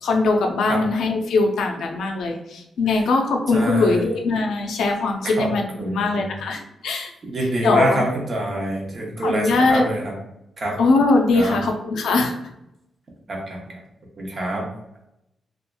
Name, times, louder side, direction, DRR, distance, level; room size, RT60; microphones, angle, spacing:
voice 1, 0.0-7.1 7.6-8.0 9.2-9.8 10.8-12.4, left 3 dB, 90° left, 2 dB, 0.4 m, -21 dB
voice 2, 3.5-4.1 5.2-5.5 5.8-6.4 7.3-10.1 10.6-10.8 11.3-11.6 13.3-13.6 14.2-14.6, right 1 dB, 35° right, -1 dB, 0.7 m, -26 dB
2.9 x 2.4 x 2.2 m, 0.84 s
wide cardioid pair, 170°, 0 cm